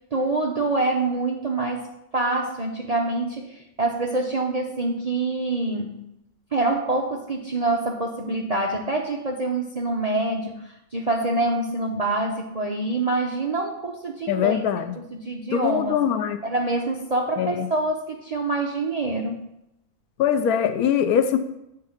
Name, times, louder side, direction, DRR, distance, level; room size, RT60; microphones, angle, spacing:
voice 1, 0.1-1.9 2.1-6.1 6.5-16.1 16.4-19.4, right 2 dB, 45° right, 0 dB, 0.5 m, -26 dB
voice 2, 14.3-15.0 15.5-16.4 17.4-17.7 20.2-21.4, left 8 dB, 85° left, 10 dB, 1.1 m, -22 dB
8.7 x 3.7 x 5.6 m, 0.84 s
omnidirectional pair, 1.5 m